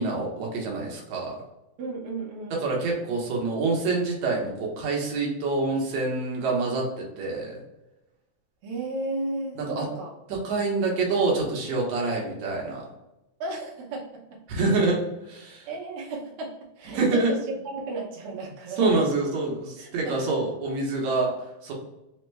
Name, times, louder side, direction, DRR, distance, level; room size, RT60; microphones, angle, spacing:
voice 1, 0.0-1.4 2.6-7.6 9.6-9.9 10.3-12.9 14.5-15.7 16.9-17.3 18.8-21.3 21.6-21.7, right 3 dB, 70° right, -2 dB, 1.8 m, -26 dB
voice 2, 1.8-2.6 8.6-10.1 13.4-14.4 15.6-19.0 19.8-20.4, right 2 dB, 90° right, -3 dB, 1.2 m, -34 dB
5.2 x 2.1 x 3.2 m, 0.95 s
omnidirectional pair, 3.9 m